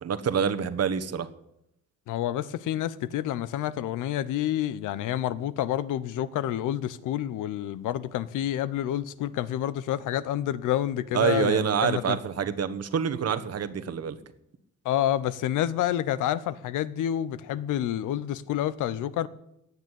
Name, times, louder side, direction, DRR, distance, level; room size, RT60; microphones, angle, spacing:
voice 1, 0.0-1.3 11.1-14.2, right 7 dB, 55° right, 1.4 m, -26 dB
voice 2, 2.1-12.2 14.8-19.3, left 12 dB, 85° left, 0.9 m, -28 dB
17.5 x 6.9 x 10.0 m
cardioid pair, 90°, 30 cm